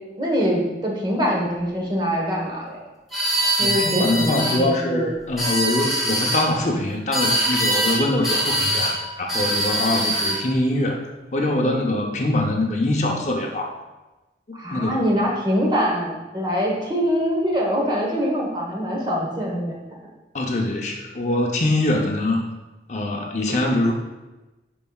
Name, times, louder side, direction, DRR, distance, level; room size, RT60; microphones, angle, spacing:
voice 1, 0.2-2.8 3.6-5.1 14.5-19.8, equal, 25° right, -2 dB, 1.2 m, -24 dB
sound 1, 3.1-4.6 5.2-6.4 7.1-8.0 8.2-8.9 9.3-10.4, right 1 dB, ahead, 1.9 m, -23 dB
voice 2, 3.6-11.0 11.3-13.8 14.5-15.0 20.3-22.4 22.9-23.9, left 1 dB, 40° left, 1 dB, 0.7 m, -23 dB
11.0 x 4.7 x 2.3 m, 1.1 s
head